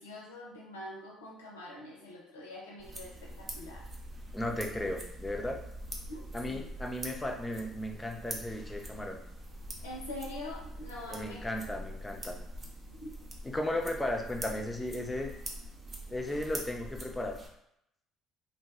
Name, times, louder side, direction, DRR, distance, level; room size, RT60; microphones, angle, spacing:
voice 1, 0.0-3.8 6.1-6.6 9.8-11.4 12.9-13.1, left 1 dB, 80° left, -2 dB, 0.5 m, -44 dB
sound 1, 2.8-17.5, right 1 dB, 30° right, 0.6 m, -44 dB
voice 2, 4.3-5.6 6.3-9.2 11.1-12.4 13.4-15.3 16.1-17.4, left 1 dB, 15° left, 2 dB, 0.5 m, -35 dB
2.5 x 2.2 x 2.9 m, 0.77 s
figure-of-eight pair, 55°, 0 cm